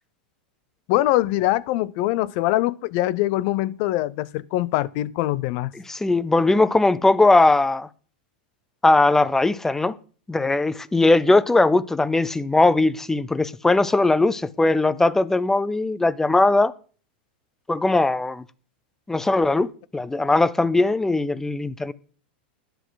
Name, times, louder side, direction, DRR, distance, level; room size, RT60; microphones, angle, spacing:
voice 1, 0.9-5.7, left 16 dB, 55° left, 0.6 m, -23 dB
voice 2, 5.9-7.9 8.8-10.0 10.3-16.7 17.7-18.4 19.1-21.9, left 2 dB, 10° left, 0.6 m, -19 dB
12.5 x 10.5 x 4.0 m
hypercardioid pair, 120°, 5 cm